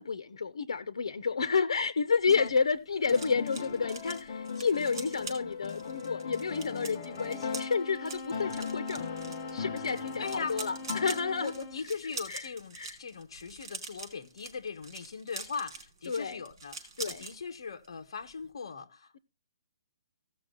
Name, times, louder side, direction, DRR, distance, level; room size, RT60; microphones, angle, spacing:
voice 1, 0.0-11.5 12.3-12.5 12.7-13.0 16.1-16.4 17.0-17.2, left 5 dB, 85° left, 0.9 m, -30 dB
sound 1, 2.1-17.3 17.7-17.9 18.2-18.5, right 4 dB, 50° right, 4.5 m, -45 dB
sound 2, 3.1-7.9 8.3-11.6, left 6 dB, 35° left, 1.4 m, -39 dB
sound 3, 7.1-12.0, left 3 dB, 15° left, 0.8 m, -43 dB
voice 2, 10.2-10.6 11.4-19.2, left 5 dB, 60° left, 1.3 m, -39 dB
16.0 x 6.3 x 3.9 m
hypercardioid pair, 170°, 3 cm